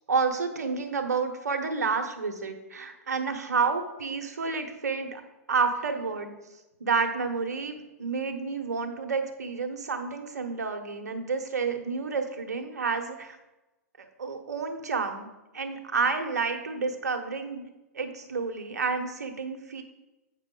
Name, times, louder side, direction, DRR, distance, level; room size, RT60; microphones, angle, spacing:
voice 1, 0.1-5.2 5.5-6.3 6.8-13.4 14.2-15.3 15.5-17.6 17.9-19.8, right 5 dB, 85° right, 6 dB, 1.1 m, -30 dB
8.3 x 6.0 x 3.9 m, 1.0 s
hypercardioid pair, 115°, 9 cm